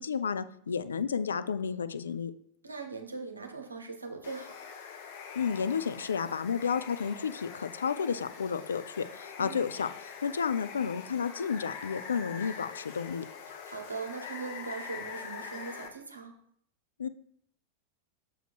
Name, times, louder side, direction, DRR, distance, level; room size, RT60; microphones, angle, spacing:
voice 1, 0.0-2.3 5.4-9.9 10.2-13.3 17.0-17.1, left 6 dB, 70° left, 12 dB, 0.3 m, -31 dB
voice 2, 2.6-4.6 9.4-9.7 13.5-16.3, right 4 dB, 80° right, 4 dB, 1.0 m, -40 dB
Water, 4.2-15.9, left 6 dB, 50° left, 0.9 m, -44 dB
6.4 x 4.7 x 4.7 m, 0.66 s
figure-of-eight pair, 90°, 0 cm